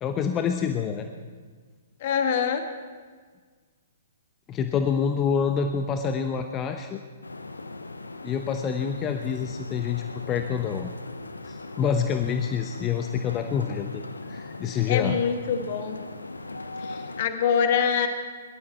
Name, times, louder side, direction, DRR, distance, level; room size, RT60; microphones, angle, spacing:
voice 1, 0.0-1.1 4.5-7.0 8.2-10.9 11.4-14.0 14.3-15.2, left 7 dB, 25° left, 6 dB, 1.0 m, -27 dB
voice 2, 2.0-2.7 14.9-16.0 16.8-18.1, left 7 dB, 45° left, 7 dB, 1.6 m, -25 dB
sound 1, 7.2-17.2, left 2 dB, 80° left, 0.9 m, -39 dB
22.5 x 12.5 x 4.4 m, 1.5 s
figure-of-eight pair, 120°, 0 cm